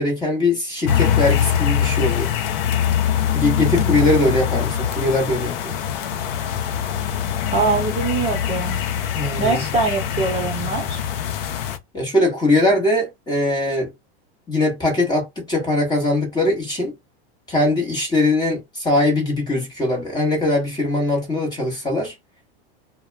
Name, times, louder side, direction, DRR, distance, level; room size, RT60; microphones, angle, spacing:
voice 1, 0.0-2.3 3.3-5.8 9.1-9.7 11.9-13.9 14.5-16.9 17.5-22.1, left 2 dB, 15° left, 1.0 m, -21 dB
sound 1, 0.9-11.8, left 9 dB, 65° left, 0.6 m, -23 dB
voice 2, 3.6-4.0 7.5-8.8 9.4-11.0, right 4 dB, 20° right, 0.8 m, -23 dB
2.2 x 2.1 x 3.1 m
supercardioid pair, 145°, 30 cm